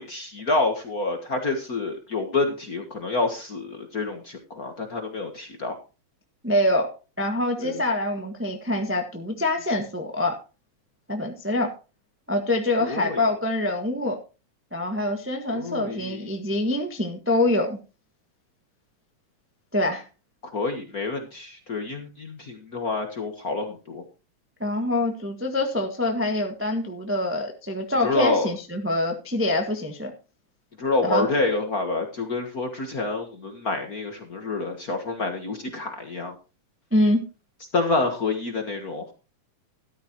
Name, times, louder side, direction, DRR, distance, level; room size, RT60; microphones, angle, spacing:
voice 1, 0.0-5.8 7.6-7.7 12.8-13.2 15.5-16.3 20.4-24.0 28.0-28.5 30.8-36.3 37.7-39.1, left 3 dB, 45° left, 4 dB, 1.2 m, -28 dB
voice 2, 6.4-10.4 11.1-11.7 12.3-14.2 14.7-17.8 19.7-20.0 24.6-30.1 31.0-31.2 36.9-37.2, left 1 dB, 20° right, 3 dB, 0.3 m, -25 dB
13.0 x 12.0 x 3.0 m, 0.32 s
omnidirectional pair, 3.5 m